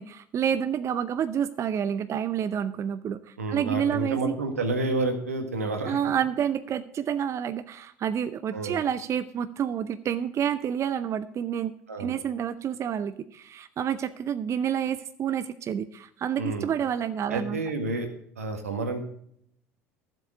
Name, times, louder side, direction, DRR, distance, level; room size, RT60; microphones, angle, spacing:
voice 1, 0.0-4.3 5.8-11.7 12.0-17.6, right 8 dB, 40° right, 12 dB, 0.6 m, -29 dB
voice 2, 3.4-6.0 8.5-8.8 11.9-12.2 16.4-16.7 17.3-18.1 18.4-19.0, right 2 dB, 85° right, 6 dB, 1.5 m, -29 dB
12.5 x 7.7 x 4.8 m, 0.68 s
hypercardioid pair, 65°, 8 cm